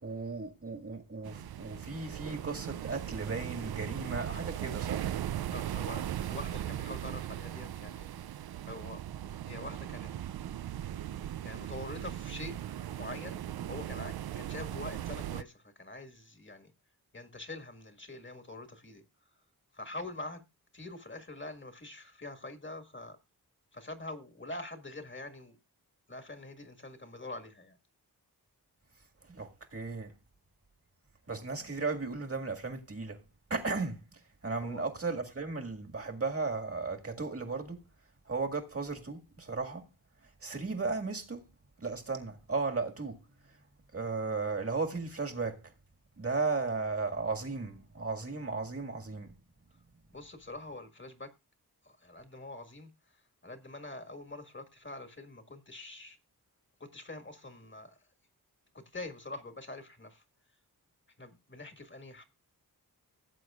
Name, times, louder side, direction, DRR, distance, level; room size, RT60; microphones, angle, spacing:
voice 1, 0.0-5.1 29.3-30.1 31.3-33.2 33.5-37.8 38.3-39.8 40.4-41.4 41.8-43.2 43.9-45.6 46.2-49.3, right 4 dB, 40° right, 1.9 m, -35 dB
sound 1, 1.2-15.4, right 11 dB, 80° right, 0.5 m, -38 dB
voice 2, 5.5-8.1 8.6-9.0 9.5-10.1 11.4-12.6 13.0-13.4 13.7-16.7 17.1-19.0 19.7-20.4 20.7-23.2 23.7-25.6 26.1-27.8 34.6-34.9 50.1-51.3 51.8-56.2 56.8-58.0 58.7-60.2 61.2-62.2, left 2 dB, 30° left, 1.8 m, -45 dB
17.0 x 8.0 x 2.4 m
wide cardioid pair, 70°, 37 cm